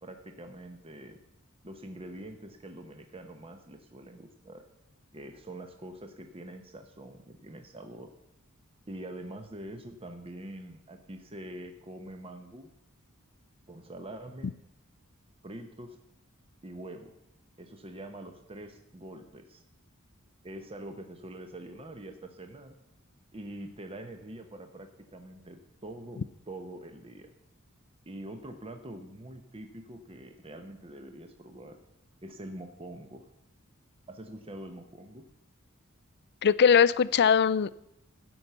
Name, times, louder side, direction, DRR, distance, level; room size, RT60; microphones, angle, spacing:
voice 1, 0.0-1.2 1.6-4.6 5.1-8.1 8.9-12.7 13.7-14.5 15.4-16.0 16.6-17.1 17.6-19.6 20.4-22.7 23.3-27.3 28.1-31.8 32.2-33.2 34.1-35.2, right 1 dB, 25° right, 6 dB, 1.0 m, -44 dB
voice 2, 36.4-37.7, left 7 dB, 50° left, 17 dB, 0.4 m, -21 dB
15.5 x 5.7 x 8.1 m, 0.83 s
head